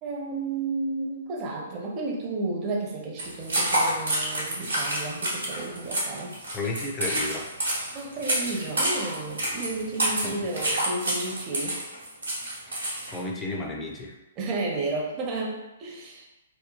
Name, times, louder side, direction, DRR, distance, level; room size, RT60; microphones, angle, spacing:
voice 1, 0.0-6.4 7.9-11.8 14.4-16.3, right 3 dB, 30° right, -1 dB, 0.6 m, -32 dB
sound 1, 3.2-13.2, right 1 dB, 85° right, 1.0 m, -28 dB
voice 2, 6.5-7.5 10.2-10.4 13.1-14.1, left 2 dB, 15° left, 0 dB, 0.4 m, -32 dB
3.0 x 2.1 x 2.3 m, 0.99 s
hypercardioid pair, 125°, 0 cm